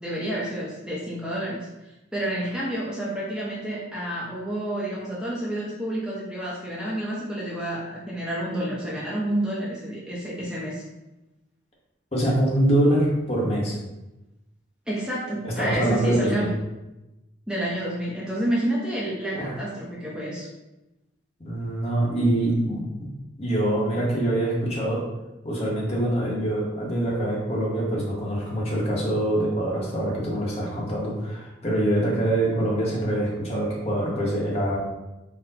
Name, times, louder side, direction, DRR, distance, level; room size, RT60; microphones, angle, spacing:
voice 1, 0.0-10.8 14.9-16.5 17.5-20.5, right 1 dB, 5° right, -6 dB, 0.6 m, -29 dB
voice 2, 12.1-13.8 15.4-16.5 19.3-19.6 21.4-22.8 23.4-25.0 25.4-34.8, right 1 dB, 30° left, -3 dB, 0.9 m, -24 dB
4.2 x 2.1 x 4.0 m, 0.98 s
head